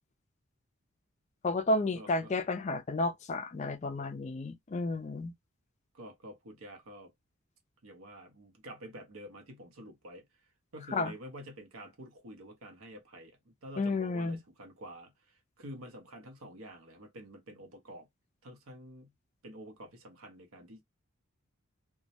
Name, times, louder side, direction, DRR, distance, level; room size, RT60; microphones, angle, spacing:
voice 1, 1.4-5.3 10.9-11.1 13.8-14.4, left 2 dB, 35° left, 0.3 m, -31 dB
voice 2, 1.9-2.3 5.9-7.1 7.8-10.3 10.7-18.1 18.4-19.1 19.4-20.8, equal, 90° right, 0.8 m, -48 dB
2.2 x 2.0 x 2.7 m
head